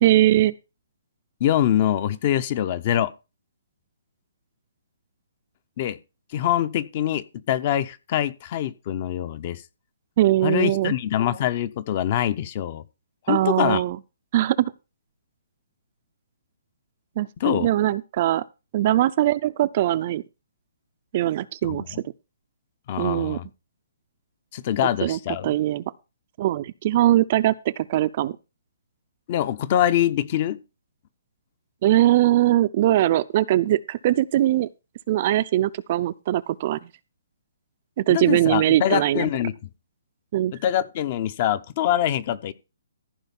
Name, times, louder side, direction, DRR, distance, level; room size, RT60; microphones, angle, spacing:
voice 1, 0.0-0.5 10.2-10.9 13.3-14.0 14.3-14.7 17.2-18.4 18.7-20.2 21.1-22.0 23.0-23.4 25.0-25.8 26.4-28.3 31.8-34.7 35.1-36.8 38.0-39.3 40.3-40.5, right 14 dB, 30° right, 0.5 m, -21 dB
voice 2, 1.4-3.1 5.8-6.0 6.3-9.6 10.4-12.8 13.3-13.8 17.4-17.7 21.6-22.0 22.9-23.5 24.5-25.6 29.3-30.6 38.1-39.7 40.5-42.5, left 11 dB, 30° left, 0.7 m, -24 dB
15.0 x 5.1 x 5.4 m
hypercardioid pair, 170°, 0 cm